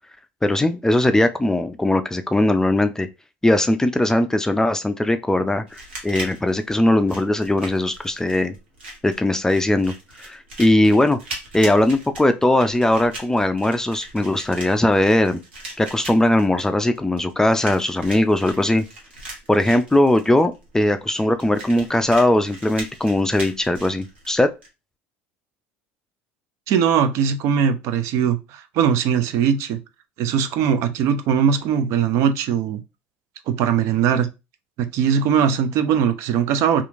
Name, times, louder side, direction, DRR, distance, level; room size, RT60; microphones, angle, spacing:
voice 1, 0.4-3.1 3.4-8.5 9.0-9.9 10.2-11.2 11.5-15.4 15.8-18.8 19.5-24.5, left 1 dB, 10° left, 0.3 m, -19 dB
sound 1, 5.7-24.7, right 2 dB, 85° right, 0.9 m, -39 dB
voice 2, 26.7-29.8 30.2-32.8 33.5-34.3 34.8-36.8, right 8 dB, 60° right, 0.4 m, -20 dB
2.8 x 2.4 x 2.4 m
hypercardioid pair, 70°, 6 cm